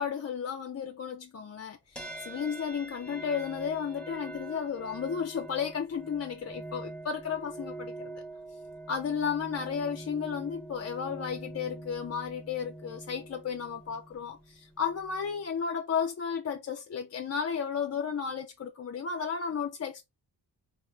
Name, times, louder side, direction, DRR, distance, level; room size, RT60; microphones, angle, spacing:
voice 1, 0.0-8.2 8.9-20.0, left 7 dB, 35° left, 0.4 m, -33 dB
sound 1, 2.0-15.5, right 2 dB, 5° left, 0.8 m, -44 dB
3.0 x 2.3 x 3.2 m
wide cardioid pair, 90°, 44 cm